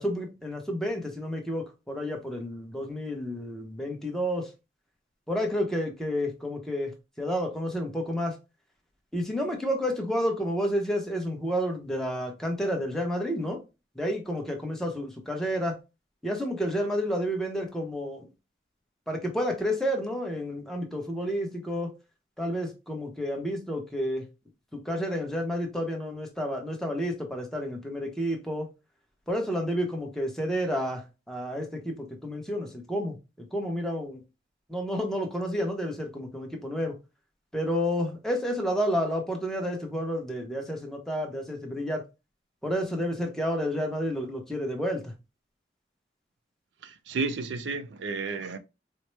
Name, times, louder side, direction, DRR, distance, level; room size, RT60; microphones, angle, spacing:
voice 1, 0.0-4.5 5.3-8.4 9.1-13.6 14.0-15.8 16.2-18.3 19.1-21.9 22.4-24.2 24.8-28.7 29.3-33.2 33.5-34.2 34.7-36.9 37.5-42.0 42.6-45.1, equal, 5° left, 0.8 m, -30 dB
voice 2, 46.8-48.6, right 4 dB, 80° right, 0.4 m, -32 dB
4.3 x 2.1 x 3.1 m
head